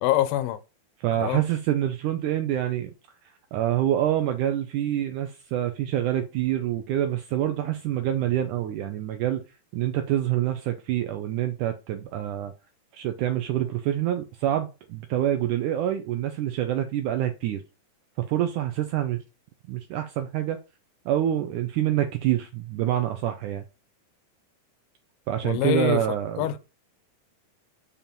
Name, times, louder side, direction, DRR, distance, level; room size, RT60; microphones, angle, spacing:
voice 1, 0.0-0.6 1.2-1.4 25.4-26.0 26.4-26.6, left 13 dB, 80° left, 2.5 m, -24 dB
voice 2, 1.0-2.9 3.5-9.4 9.7-12.5 12.9-17.6 18.2-19.2 19.7-20.6 21.1-23.6 25.3-26.6, right 12 dB, 75° right, 1.9 m, -26 dB
7.4 x 4.3 x 5.3 m
omnidirectional pair, 4.3 m